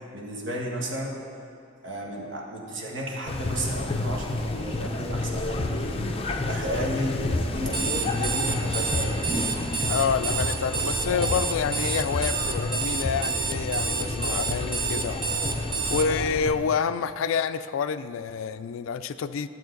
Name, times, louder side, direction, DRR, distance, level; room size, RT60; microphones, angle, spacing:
voice 1, 0.1-1.1 1.8-9.2, equal, 65° right, -1 dB, 1.5 m, -33 dB
sound 1, 3.3-16.5, left 2 dB, 30° left, 0.5 m, -30 dB
Alarm, 7.6-16.1, right 6 dB, 25° right, 0.6 m, -29 dB
voice 2, 9.9-15.2 15.9-19.5, left 6 dB, 85° left, 12 dB, 0.4 m, -28 dB
12.0 x 7.3 x 3.9 m, 2.5 s
head